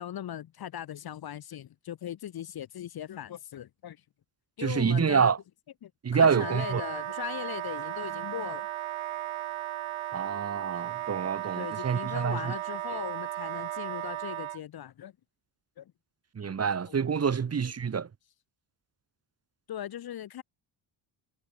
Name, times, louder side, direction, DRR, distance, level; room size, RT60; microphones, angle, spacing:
voice 1, 0.0-4.0 4.6-5.3 5.8-8.7 11.2-15.1 15.8-15.9 16.4-16.9 17.3-17.4 19.7-20.4, left 11 dB, 50° left, 0.9 m, -39 dB
voice 2, 4.6-5.4 6.0-6.8 10.1-12.5 16.3-18.1, right 6 dB, 30° right, 1.3 m, -27 dB
Wind instrument woodwind instrument, 6.2-14.6, right 14 dB, 80° right, 1.7 m, -35 dB
cardioid pair, 120°, 47 cm